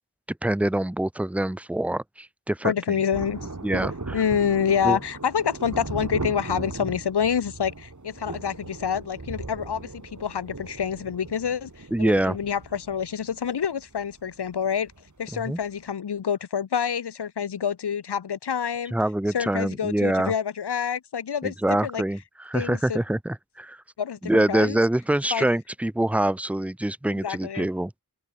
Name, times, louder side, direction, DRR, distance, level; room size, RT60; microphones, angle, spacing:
voice 1, 0.3-3.0 3.6-4.2 4.8-5.0 11.9-12.4 15.3-15.6 18.9-20.3 21.4-23.8 24.2-27.9, right 1 dB, 5° right, 0.7 m, -25 dB
voice 2, 2.6-3.5 4.1-14.9 15.2-18.9 19.3-21.5 21.8-22.0 22.5-23.0 24.0-24.8 25.3-25.5 27.2-27.7, left 7 dB, 85° left, 0.9 m, -27 dB
Thunder, 3.1-15.1 15.4-15.5, right 3 dB, 50° right, 8.0 m, -37 dB
wide cardioid pair, 65°, 39 cm